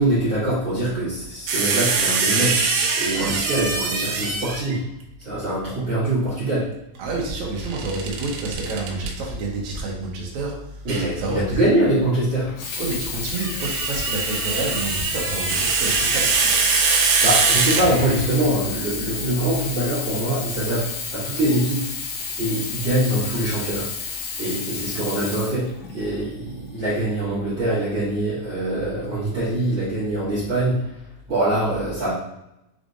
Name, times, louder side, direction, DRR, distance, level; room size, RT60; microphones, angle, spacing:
voice 1, 0.0-4.8 5.2-6.7 10.8-12.5 17.2-21.9 22.4-23.9 24.4-30.8 31.3-32.1, right 1 dB, 40° right, -11 dB, 1.8 m, -23 dB
sound 1, 1.5-4.8 7.7-9.1 10.9-11.1 13.2-18.3, right 4 dB, 85° right, 2.6 m, -23 dB
voice 2, 7.0-10.5 11.2-11.6 12.8-16.5, right 3 dB, 70° right, -2 dB, 1.8 m, -28 dB
Sink (filling or washing), 12.5-26.2 27.0-27.1, left 5 dB, 85° left, 2.9 m, -31 dB
6.2 x 3.2 x 2.6 m, 0.86 s
omnidirectional pair, 4.5 m